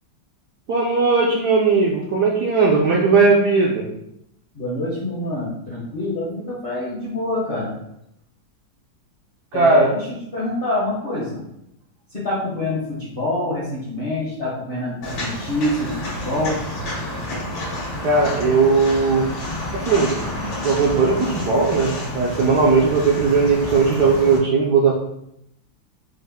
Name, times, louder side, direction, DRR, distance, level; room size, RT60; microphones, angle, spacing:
voice 1, 0.7-3.9 9.5-9.9 18.0-19.3 19.9-20.1 20.6-24.9, right 4 dB, 70° right, -2 dB, 1.0 m, -17 dB
voice 2, 4.5-7.7 9.5-10.1 10.3-11.4 12.1-16.6, left 1 dB, 45° left, -7 dB, 0.7 m, -26 dB
Walk footsteps, 15.0-24.4, left 1 dB, 80° left, 2.1 m, -29 dB
5.3 x 2.1 x 3.4 m, 0.78 s
omnidirectional pair, 2.2 m